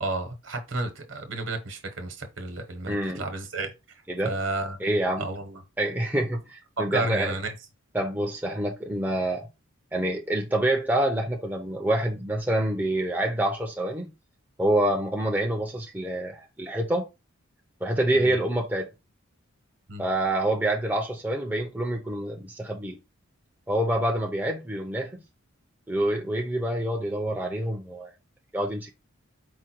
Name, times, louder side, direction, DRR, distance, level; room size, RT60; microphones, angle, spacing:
voice 1, 0.0-3.7 4.2-4.8 5.2-5.6 6.8-7.5 18.1-18.4 19.9-20.1, right 2 dB, 60° right, 1.0 m, -32 dB
voice 2, 2.9-3.2 4.1-4.3 4.8-5.2 5.8-7.3 7.9-9.5 9.9-14.1 14.6-17.1 17.8-18.9 20.0-23.0 23.7-25.2 25.9-28.1 28.5-28.9, right 1 dB, 10° right, 0.5 m, -27 dB
4.9 x 2.2 x 4.3 m
head